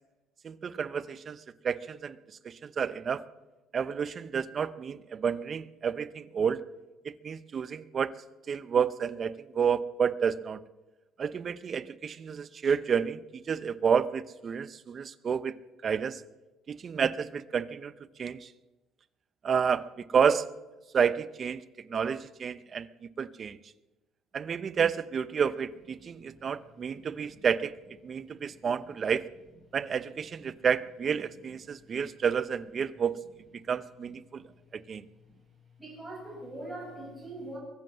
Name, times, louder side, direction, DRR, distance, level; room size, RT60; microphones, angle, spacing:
voice 1, 0.4-2.2 2.4-3.2 3.7-6.6 7.0-8.1 8.5-10.6 11.2-15.6 15.8-16.2 16.7-17.9 18.2-18.5 19.4-20.5 20.9-22.9 23.2-23.6 24.3-27.8 28.0-29.3 29.7-33.2 33.7-34.4 34.7-35.0, right 7 dB, 40° right, 17 dB, 0.6 m, -30 dB
voice 2, 26.0-26.4 26.9-27.0 30.5-30.6 34.4-34.5 35.8-37.6, right 1 dB, 10° right, -3 dB, 5.9 m, -43 dB
22.5 x 7.6 x 7.5 m, 1.1 s
cardioid pair, 120°, 0 cm